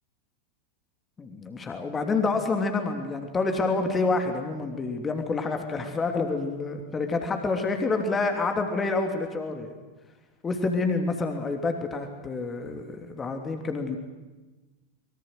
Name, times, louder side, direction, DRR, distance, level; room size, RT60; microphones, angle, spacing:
voice 1, 1.2-9.8 10.4-14.0, left 3 dB, 20° left, 5 dB, 2.9 m, -28 dB
24.5 x 23.0 x 7.9 m, 1.2 s
figure-of-eight pair, 90°, 0 cm